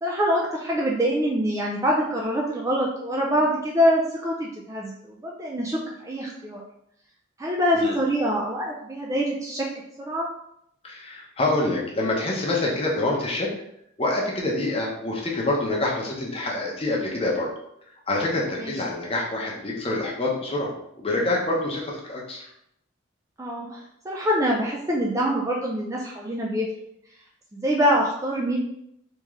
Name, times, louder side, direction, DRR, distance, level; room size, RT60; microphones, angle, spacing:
voice 1, 0.0-6.6 7.4-9.7 10.0-10.3 18.6-18.7 23.4-26.7 27.5-28.6, equal, 15° right, -2 dB, 0.3 m, -25 dB
voice 2, 10.8-13.5 14.0-17.5 18.1-22.5, left 2 dB, 30° left, -2 dB, 0.7 m, -26 dB
3.5 x 2.9 x 3.1 m, 0.76 s
head